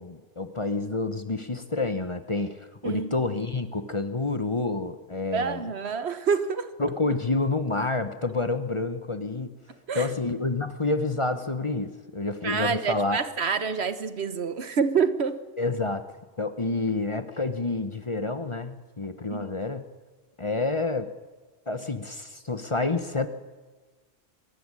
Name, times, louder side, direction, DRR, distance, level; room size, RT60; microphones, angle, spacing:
voice 1, 0.0-5.6 6.8-9.6 9.9-13.2 15.6-16.0 16.4-19.9 20.4-21.1 21.7-23.3, left 3 dB, 30° left, 1.0 m, -28 dB
voice 2, 5.3-6.7 9.9-10.1 12.4-15.4 19.3-19.5, right 6 dB, 70° right, 1.4 m, -27 dB
24.0 x 14.0 x 9.8 m
omnidirectional pair, 1.1 m